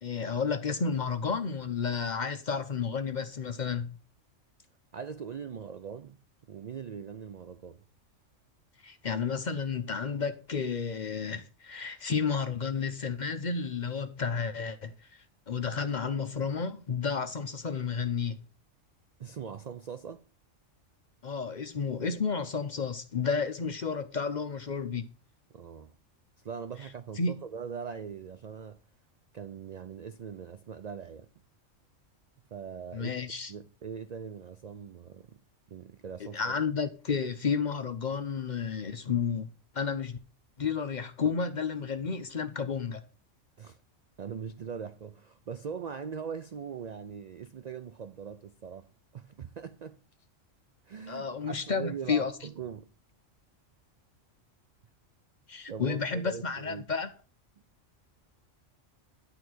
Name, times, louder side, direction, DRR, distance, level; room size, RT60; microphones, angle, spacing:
voice 1, 0.0-4.0 8.8-18.4 21.2-25.1 27.2-27.3 32.9-33.5 36.2-39.5 39.7-40.2 40.6-43.0 51.1-52.3 55.5-57.1, left 5 dB, 45° left, 0.6 m, -31 dB
voice 2, 4.9-6.2 6.5-7.8 19.2-20.2 25.5-26.0 26.4-28.8 29.3-31.3 32.5-35.4 35.7-36.6 43.6-43.8 44.2-50.0 50.9-52.9 55.7-56.9, right 6 dB, 75° right, 0.4 m, -41 dB
11.0 x 3.9 x 6.1 m
omnidirectional pair, 1.3 m